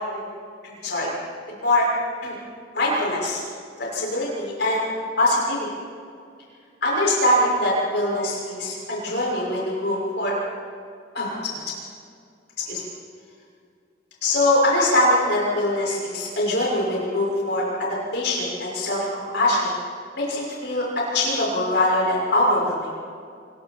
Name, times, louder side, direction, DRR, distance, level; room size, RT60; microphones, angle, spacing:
voice 1, 0.6-1.1 1.6-1.9 2.2-2.3 2.7-3.4 3.8-4.9 5.2-5.7 6.8-10.3 11.1-11.6 12.7-12.8 14.2-19.7 20.1-20.9 21.1-22.9, left 1 dB, 65° left, -4 dB, 6.3 m, -23 dB
27.0 x 23.0 x 4.6 m, 2.3 s
head